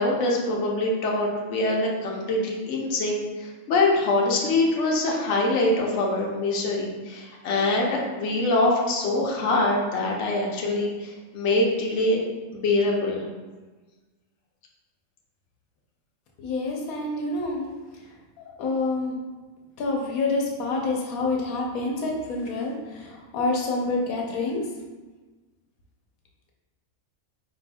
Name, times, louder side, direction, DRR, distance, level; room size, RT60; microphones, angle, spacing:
voice 1, 0.0-12.2 12.5-13.2, left 2 dB, 65° left, -2 dB, 1.0 m, -24 dB
voice 2, 16.4-17.7 18.4-19.2 19.8-24.6, left 3 dB, 85° left, -1 dB, 1.2 m, -27 dB
4.8 x 4.2 x 2.3 m, 1.3 s
omnidirectional pair, 1.5 m